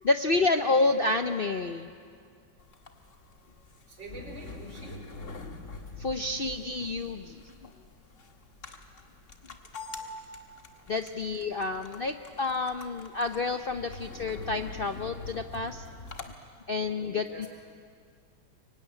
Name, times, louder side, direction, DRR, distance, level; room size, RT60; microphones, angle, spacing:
voice 1, 0.0-1.9 6.0-7.4 10.9-15.8 16.7-17.5, left 3 dB, 60° left, 7 dB, 0.6 m, -29 dB
sound 1, 2.6-16.3, left 3 dB, 45° left, 1.8 m, -45 dB
voice 2, 3.9-5.0 11.5-11.7 13.5-13.7 16.8-17.5, right 1 dB, 85° right, 2 dB, 4.9 m, -46 dB
24.5 x 23.0 x 9.8 m, 2.2 s
omnidirectional pair, 2.0 m